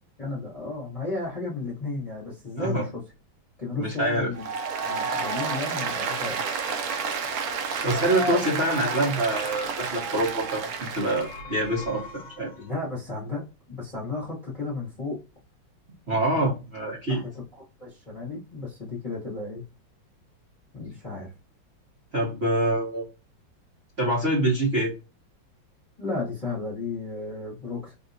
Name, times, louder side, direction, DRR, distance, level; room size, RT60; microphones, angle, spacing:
voice 1, 0.2-3.0 3.6-4.5 4.8-6.4 12.6-15.2 16.3-16.6 17.1-17.3 17.8-19.6 20.7-21.3 26.0-27.9, left 3 dB, 20° left, -6 dB, 1.4 m, -33 dB
voice 2, 2.6-2.9 3.7-4.3 7.8-12.5 16.1-17.2 22.1-23.0 24.0-24.9, right 1 dB, 40° right, -5 dB, 1.0 m, -25 dB
Applause, 4.3-11.4, right 5 dB, 75° right, 0.8 m, -30 dB
sound 1, 11.0-12.9, left 2 dB, 75° left, 1.3 m, -42 dB
3.3 x 2.8 x 2.6 m, 0.29 s
omnidirectional pair, 2.2 m